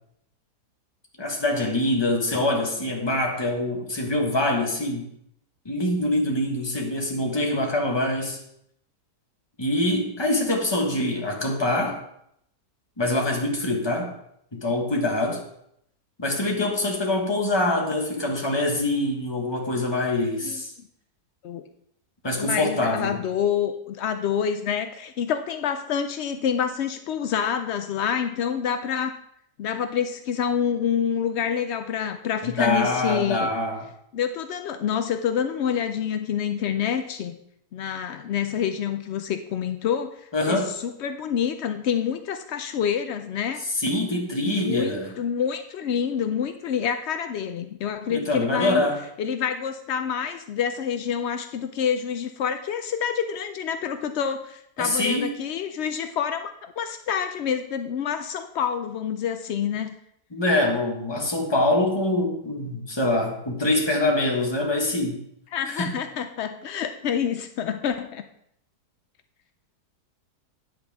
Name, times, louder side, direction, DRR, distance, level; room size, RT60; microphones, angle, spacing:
voice 1, 1.2-5.1 5.6-8.4 9.6-12.0 13.0-14.1 14.5-15.4 16.2-20.7 22.2-23.2 32.4-33.9 40.3-40.7 43.7-45.1 48.1-49.0 54.8-55.3 60.3-65.2 65.7-65.9, left 1 dB, 15° left, 0 dB, 1.3 m, -24 dB
voice 2, 22.4-29.1 29.6-33.5 34.1-37.4 37.7-40.1 40.5-43.6 44.4-48.9 49.2-60.0 65.5-68.2, left 8 dB, 90° left, 8 dB, 0.5 m, -27 dB
9.6 x 7.8 x 3.5 m, 0.73 s
omnidirectional pair, 1.8 m